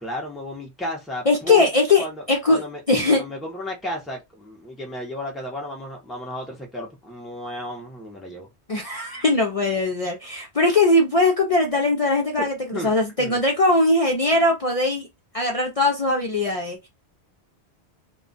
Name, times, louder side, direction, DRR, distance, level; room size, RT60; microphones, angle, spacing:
voice 1, 0.0-1.7 2.0-2.8 3.1-8.5 12.4-12.9 13.2-13.4, left 1 dB, ahead, 0.6 m, -33 dB
voice 2, 1.3-2.6 2.9-3.2 8.7-15.1 15.3-16.9, left 2 dB, 40° left, 0.6 m, -20 dB
2.3 x 2.1 x 3.8 m
omnidirectional pair, 1.1 m